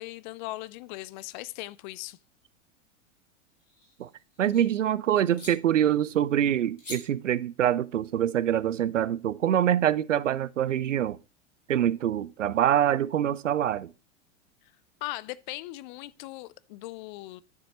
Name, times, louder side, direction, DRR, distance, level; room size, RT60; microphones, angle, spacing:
voice 1, 0.0-2.2 15.0-17.4, left 18 dB, 40° left, 0.4 m, -39 dB
sound 1, 3.5-4.6 5.3-5.5 6.8-7.0, left 2 dB, 90° left, 4.2 m, -44 dB
voice 2, 4.4-11.2 11.7-13.9, right 10 dB, 90° right, 0.5 m, -25 dB
9.5 x 6.9 x 2.9 m
hypercardioid pair, 95°, 36 cm